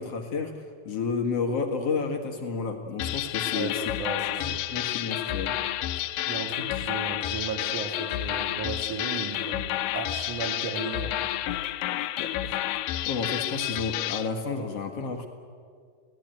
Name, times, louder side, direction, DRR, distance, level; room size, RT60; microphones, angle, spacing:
voice 1, 0.0-3.8 4.4-5.5 12.2-12.6 13.1-15.3, left 4 dB, 50° left, 3 dB, 2.4 m, -31 dB
sound 1, 3.0-14.3, left 13 dB, 85° left, 2.4 m, -30 dB
voice 2, 3.5-4.7 6.3-11.3, right 5 dB, 70° right, 5 dB, 3.2 m, -35 dB
29.0 x 18.0 x 9.2 m, 2.1 s
omnidirectional pair, 3.8 m